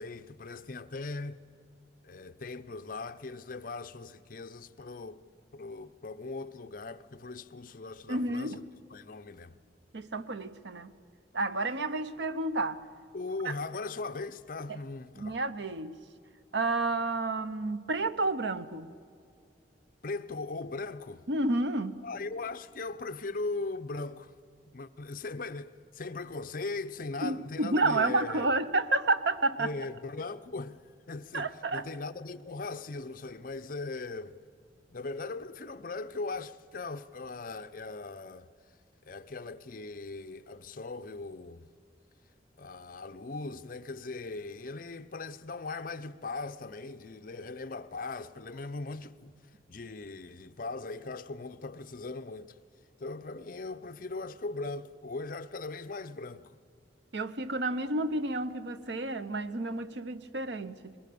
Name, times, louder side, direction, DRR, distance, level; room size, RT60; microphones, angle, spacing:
voice 1, 0.0-1.4 2.0-5.2 5.5-8.6 8.9-9.6 13.1-15.4 20.0-21.2 22.0-24.3 24.7-28.5 29.6-34.4 34.9-38.5 39.0-41.7 42.6-49.3 49.7-52.6 53.0-56.5, left 3 dB, 50° left, 0.7 m, -39 dB
voice 2, 8.1-8.6 9.9-10.9 11.3-12.8 13.4-13.5 14.7-14.8 15.2-16.0 16.5-18.9 21.3-22.0 27.2-29.7 31.3-31.8 57.1-60.9, right 2 dB, 85° right, 0.9 m, -30 dB
22.0 x 20.5 x 6.9 m
head